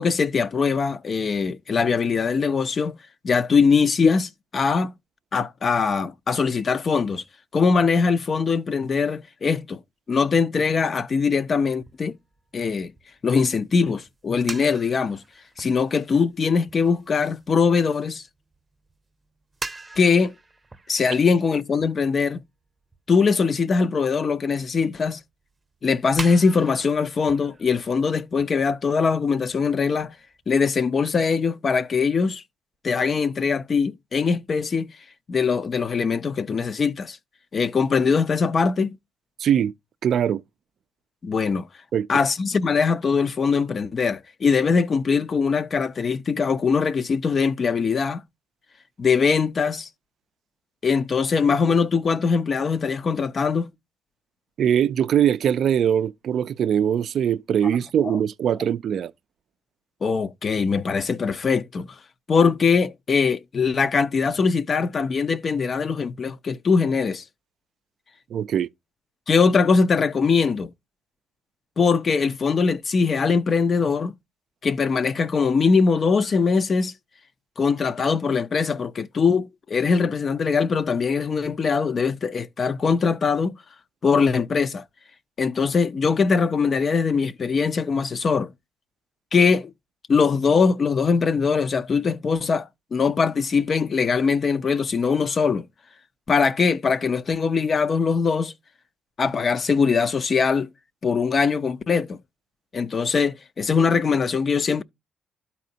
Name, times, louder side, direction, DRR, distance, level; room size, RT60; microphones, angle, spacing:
voice 1, 0.0-3.0 3.2-4.9 5.3-7.2 7.5-9.8 10.1-12.1 12.5-12.9 13.2-15.2 15.6-18.2 20.0-20.3 20.9-22.4 23.1-25.2 25.8-30.1 30.5-32.4 32.8-34.9 35.3-37.2 37.5-39.0 41.2-41.7 42.1-48.2 49.0-49.9 50.8-53.7 60.0-61.9 62.3-67.2 69.3-70.7 71.8-74.1 74.6-76.9 77.6-83.6 84.0-84.8 85.4-88.5 89.3-89.7 90.1-95.7 96.3-98.5 99.2-100.7 101.0-102.2 102.7-104.8, left 5 dB, 45° left, 0.5 m, -22 dB
sound 1, 11.3-19.0 19.2-22.4 22.9-23.0 23.9-24.3 24.6-24.7 25.1-25.2 25.7-25.8 26.1-29.2 29.5-29.6 30.0-30.1 30.3-31.2, right 3 dB, 20° right, 0.7 m, -41 dB
voice 2, 39.4-39.7 40.0-40.4 41.9-42.1 54.6-59.1 68.3-68.7, right 9 dB, 65° right, 0.3 m, -21 dB
12.0 x 4.1 x 2.7 m
cardioid pair, 90°, 0 cm